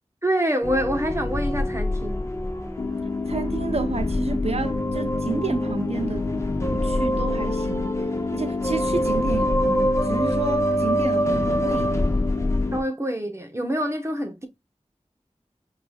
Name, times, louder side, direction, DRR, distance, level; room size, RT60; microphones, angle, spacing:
voice 1, 0.2-2.3 12.7-14.5, equal, 25° right, 1.0 m, -26 dB
sound 1, 0.6-12.8, equal, 25° left, 0.9 m, -26 dB
sound 2, 2.8-12.8, left 4 dB, 85° left, 0.8 m, -30 dB
voice 2, 3.3-6.3 6.7-7.9 8.3-12.0, right 3 dB, 60° right, 0.7 m, -30 dB
4.7 x 3.5 x 2.3 m
wide cardioid pair, 60°, 12 cm